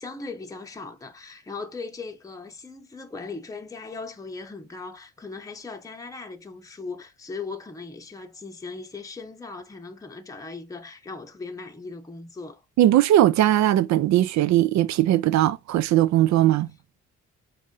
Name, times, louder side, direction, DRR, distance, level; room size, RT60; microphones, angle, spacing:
voice 1, 0.0-12.6, left 4 dB, 10° left, 0.7 m, -38 dB
voice 2, 12.8-16.7, right 13 dB, 65° right, 0.4 m, -19 dB
4.2 x 2.6 x 3.6 m
cardioid pair, 90°, 30 cm